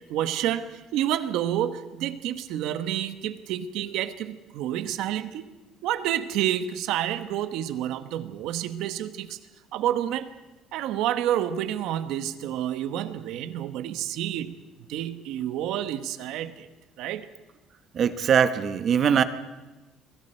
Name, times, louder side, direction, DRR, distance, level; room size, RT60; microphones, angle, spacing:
voice 1, 0.1-5.4 5.8-9.4 9.7-10.3 10.7-14.6 14.9-16.7 17.0-17.3, right 11 dB, 65° right, 10 dB, 1.1 m, -29 dB
voice 2, 17.9-19.2, right 7 dB, 35° right, 11 dB, 0.9 m, -21 dB
28.0 x 22.5 x 4.5 m, 1.1 s
cardioid pair, 180°, 0 cm